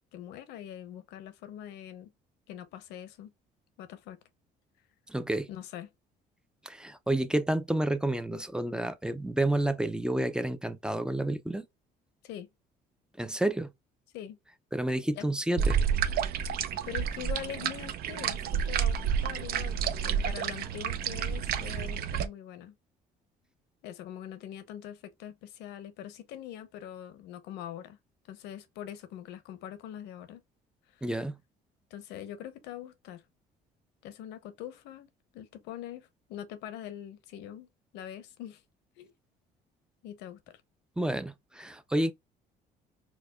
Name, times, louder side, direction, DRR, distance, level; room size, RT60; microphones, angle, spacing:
voice 1, 0.1-2.1 2.5-3.3 3.8-4.2 5.5-5.9 12.2-12.5 14.1-14.4 15.1-15.3 16.8-22.8 23.8-28.0 28.3-30.4 30.9-31.1 31.9-33.2 34.0-38.6 39.0-39.1 40.0-40.6, left 11 dB, 90° left, 0.8 m, -43 dB
voice 2, 5.1-5.5 6.7-11.7 13.2-13.7 14.7-15.8 31.0-31.4 41.0-42.1, right 1 dB, 5° right, 0.4 m, -30 dB
sound 1, 15.6-22.3, right 8 dB, 65° right, 0.5 m, -30 dB
4.6 x 2.3 x 2.3 m
cardioid pair, 110°, 17 cm